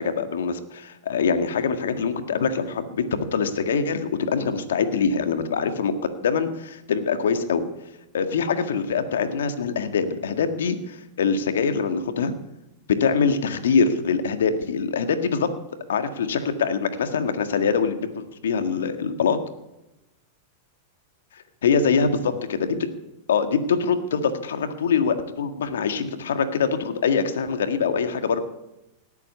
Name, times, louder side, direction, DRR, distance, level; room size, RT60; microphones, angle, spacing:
voice 1, 0.0-2.8 3.1-7.7 8.1-12.3 13.0-15.5 15.9-19.4 21.6-22.8 23.3-28.4, left 5 dB, 80° left, 8 dB, 1.7 m, -24 dB
18.0 x 8.3 x 9.5 m, 0.96 s
hypercardioid pair, 110°, 0 cm